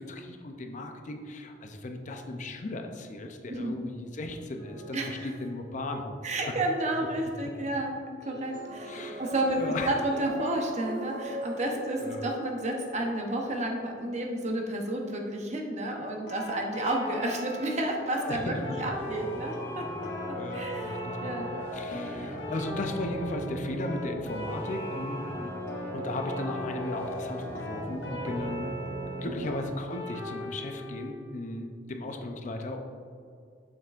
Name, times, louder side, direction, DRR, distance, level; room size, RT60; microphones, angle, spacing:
voice 1, 0.0-6.5 8.9-9.2 9.6-9.9 12.0-12.2 18.3-18.9 20.4-25.3 25.9-28.9 29.2-32.8, left 2 dB, 40° left, 4 dB, 0.5 m, -36 dB
sound 1, 4.6-5.9 8.2-13.5, right 1 dB, 80° right, 1.1 m, -40 dB
voice 2, 4.9-5.3 6.2-8.9 9.2-21.5 21.9-22.1 24.0-24.2 25.4-25.5, right 1 dB, 40° right, 1 dB, 0.8 m, -31 dB
sound 2, 16.3-31.1, left 1 dB, 75° left, 1.0 m, -40 dB
sound 3, 18.9-29.6, right 1 dB, 15° left, 1.2 m, -37 dB
7.2 x 5.8 x 2.5 m, 2.4 s
head